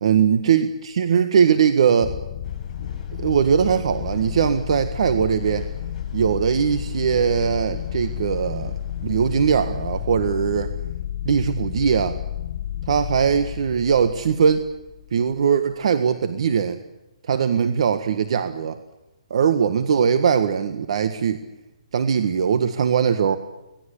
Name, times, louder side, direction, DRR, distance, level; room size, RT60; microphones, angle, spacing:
voice 1, 0.0-2.1 3.2-5.7 6.1-8.7 9.0-10.7 11.3-12.2 12.9-14.7 15.1-16.8 17.3-18.8 19.3-21.4 21.9-23.4, right 7 dB, 55° right, 9 dB, 1.6 m, -20 dB
sound 1, 2.0-15.3, left 11 dB, 45° left, 1.4 m, -31 dB
sound 2, 2.4-10.1, left 1 dB, 15° left, 7.3 m, -44 dB
25.0 x 19.5 x 8.5 m, 1.0 s
hypercardioid pair, 160°, 4 cm